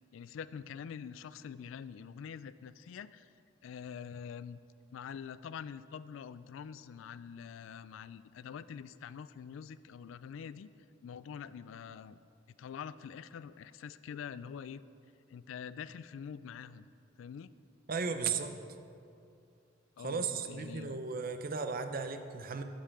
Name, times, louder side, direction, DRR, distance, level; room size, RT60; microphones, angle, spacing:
voice 1, 0.1-3.3 3.6-4.6 4.9-10.7 11.0-12.2 12.6-14.8 15.3-16.9 17.2-17.5 20.0-21.0, left 7 dB, 85° left, 16 dB, 0.3 m, -45 dB
voice 2, 17.9-18.6 20.0-22.6, right 5 dB, 50° right, 8 dB, 0.6 m, -35 dB
8.5 x 5.5 x 7.5 m, 2.5 s
head